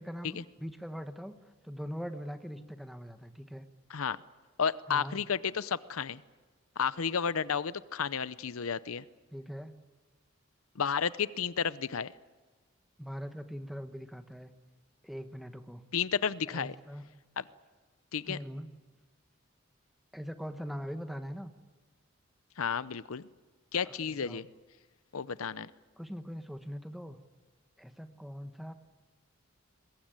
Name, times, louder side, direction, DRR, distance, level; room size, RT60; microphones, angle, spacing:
voice 1, 0.0-1.3 1.6-3.7 4.9-5.2 9.3-9.8 13.0-14.5 15.0-15.8 16.5-17.0 18.3-18.7 20.1-21.5 23.8-24.4 26.0-27.2 27.8-28.7, equal, ahead, 8 dB, 1.2 m, -41 dB
voice 2, 4.6-6.2 6.8-9.0 10.8-12.1 15.9-16.8 17.4-17.5 18.1-18.4 22.6-23.2 23.7-24.5 25.1-25.7, left 6 dB, 85° left, 17 dB, 0.7 m, -32 dB
22.5 x 21.5 x 9.1 m, 1.4 s
head